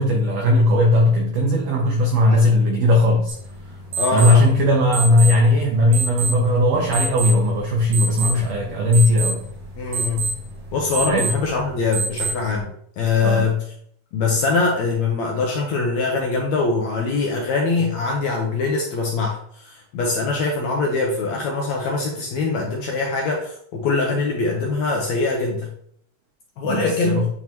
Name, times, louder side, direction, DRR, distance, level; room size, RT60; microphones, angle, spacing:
voice 1, 0.0-3.3 4.1-9.4 11.1-11.3 13.2-13.5 26.6-27.3, left 1 dB, 80° right, 1.4 m, -18 dB
sound 1, 3.3-12.6, right 4 dB, 60° right, 2.7 m, -29 dB
voice 2, 3.9-4.5 9.8-10.3 10.7-13.6 14.1-25.7 26.6-27.3, left 4 dB, 75° left, 1.7 m, -23 dB
9.1 x 3.6 x 2.9 m
omnidirectional pair, 4.0 m